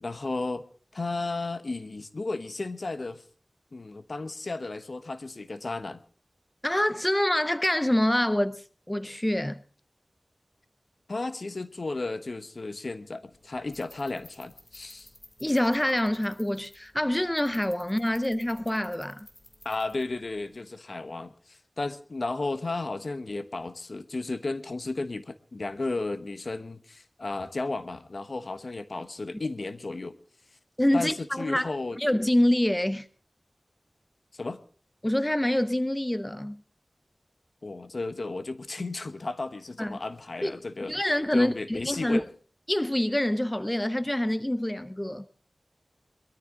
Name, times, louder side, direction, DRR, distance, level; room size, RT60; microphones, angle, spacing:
voice 1, 0.0-0.6 0.9-3.2 3.7-6.0 11.1-15.1 19.6-30.2 30.9-32.0 34.3-34.6 37.6-40.9 41.3-42.3, left 3 dB, 65° left, 1.0 m, -34 dB
voice 2, 6.6-9.6 15.4-19.3 30.8-31.7 32.0-33.1 35.0-36.6 39.8-40.0 40.4-40.5 40.9-42.2 42.7-45.3, left 1 dB, 15° left, 0.6 m, -26 dB
sound 1, 13.3-20.6, left 1 dB, 35° left, 2.9 m, -55 dB
22.0 x 13.5 x 3.8 m
wide cardioid pair, 70°, 0 cm